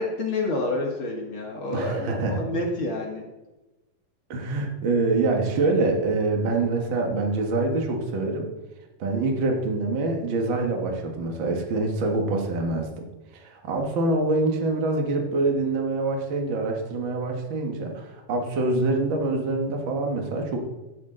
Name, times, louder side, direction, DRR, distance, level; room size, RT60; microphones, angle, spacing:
voice 1, 0.0-3.2, left 2 dB, 50° left, 0 dB, 1.8 m, -28 dB
voice 2, 1.7-2.4 4.3-8.5 9.0-13.0 13.3-20.6, right 2 dB, 45° right, 2 dB, 1.8 m, -25 dB
13.0 x 9.2 x 3.9 m, 1.1 s
omnidirectional pair, 3.9 m